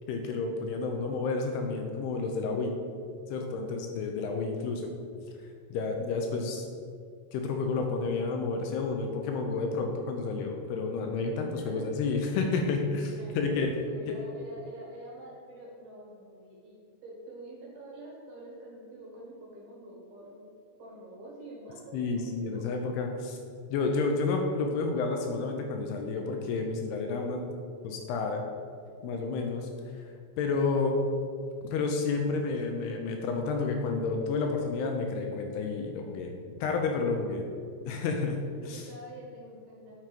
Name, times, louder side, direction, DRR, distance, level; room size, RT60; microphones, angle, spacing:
voice 1, 0.1-2.7 3.3-4.9 5.7-6.7 7.3-13.7 14.1-14.2 21.9-23.4 23.7-27.4 27.8-28.4 29.0-29.6 30.4-31.0 31.6-37.4 37.9-38.9, left 4 dB, 85° left, 3 dB, 2.6 m, -30 dB
voice 2, 11.4-12.2 13.1-16.8 17.0-22.7 38.3-40.0, right 1 dB, 70° right, -3 dB, 3.3 m, -47 dB
9.2 x 4.4 x 5.1 m, 2.2 s
omnidirectional pair, 4.7 m